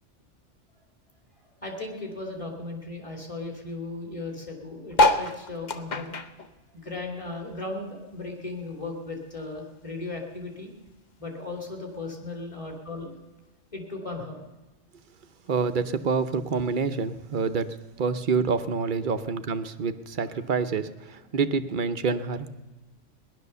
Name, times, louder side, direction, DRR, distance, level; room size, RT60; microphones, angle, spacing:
voice 1, 1.6-6.1 6.7-10.7 11.2-13.1 13.7-14.4, left 3 dB, 25° left, 2 dB, 2.8 m, -36 dB
sound 1, 4.9-7.7 8.0-9.5 10.0-10.1 10.3-10.4 10.6-11.0 11.8-11.9, left 2 dB, 40° left, 0.8 m, -26 dB
voice 2, 15.5-17.7 18.0-22.5, right 5 dB, 45° right, 10 dB, 0.9 m, -27 dB
18.5 x 11.5 x 6.8 m, 1.1 s
omnidirectional pair, 1.3 m